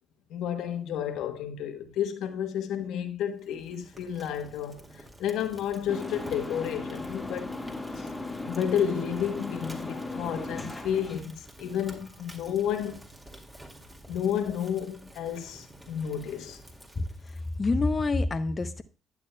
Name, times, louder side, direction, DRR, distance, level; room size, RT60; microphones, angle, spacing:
voice 1, 0.3-7.5 8.0-8.1 8.4-13.0 14.1-16.6, left 9 dB, 70° left, 1.1 m, -31 dB
Fire, 3.3-17.7, right 1 dB, 15° right, 2.1 m, -50 dB
sound 1, 5.9-11.2, left 2 dB, 10° left, 1.7 m, -37 dB
voice 2, 17.0-18.8, left 3 dB, 30° left, 0.7 m, -27 dB
11.5 x 8.3 x 2.2 m
hypercardioid pair, 55°, 0 cm